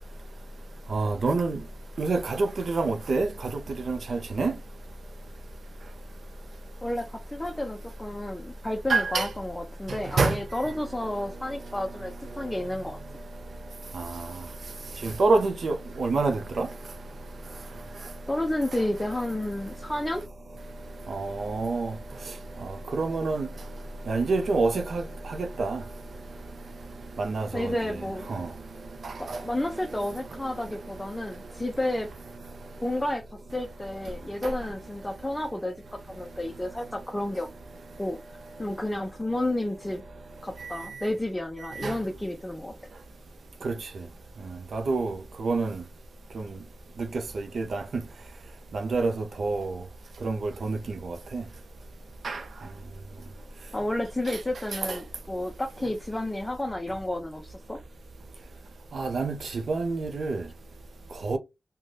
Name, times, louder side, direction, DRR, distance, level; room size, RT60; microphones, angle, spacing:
voice 1, 0.9-1.6 2.0-3.3 3.9-4.5 8.9-9.3 10.2-10.3 15.2-16.7 21.1-21.9 23.0-23.5 24.1-25.0 25.6-25.8 27.2-27.5 28.3-28.5 43.6-43.7 44.7-45.1 45.4-45.7 47.6-47.8 48.9-49.1 49.4-49.7 50.2-50.4 50.7-50.8 51.3-51.4 52.2-52.4 59.0-59.4 59.7-60.4 61.2-61.4, right 3 dB, 65° right, 0.5 m, -26 dB
voice 2, 6.8-13.0 18.3-20.2 27.5-28.3 29.2-32.1 32.8-33.2 33.5-35.7 36.1-37.5 38.0-38.2 38.6-40.0 40.4-42.7 53.7-57.8, left 1 dB, 10° left, 0.4 m, -31 dB
2.5 x 2.2 x 3.2 m
wide cardioid pair, 115°, 0 cm